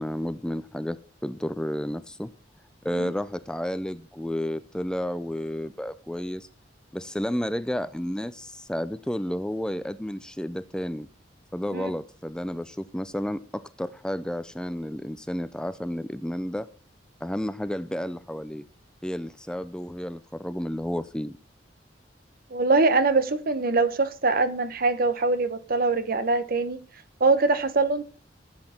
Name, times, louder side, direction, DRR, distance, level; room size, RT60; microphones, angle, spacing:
voice 1, 0.0-2.3 2.8-6.5 6.9-11.1 11.5-16.7 17.2-18.6 19.0-21.3, equal, 5° left, 0.4 m, -31 dB
voice 2, 22.5-26.8 27.2-28.0, right 3 dB, 55° right, 1.0 m, -23 dB
14.5 x 7.9 x 4.4 m
head